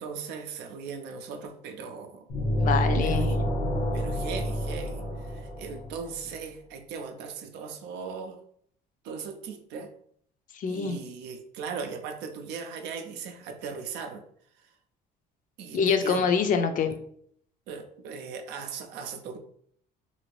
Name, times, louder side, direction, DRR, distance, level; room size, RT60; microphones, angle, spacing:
voice 1, 0.0-2.3 3.0-3.4 3.9-8.4 9.0-9.9 10.7-14.2 14.6-14.7 15.6-16.3 17.7-19.4, right 5 dB, 90° right, 6 dB, 0.5 m, -38 dB
sound 1, 2.3-6.1, equal, 70° left, 1.2 m, -28 dB
voice 2, 2.6-3.3 10.6-11.0 15.7-16.9, left 6 dB, 50° left, 8 dB, 0.5 m, -25 dB
2.7 x 2.5 x 3.1 m, 0.64 s
cardioid pair, 110°, 17 cm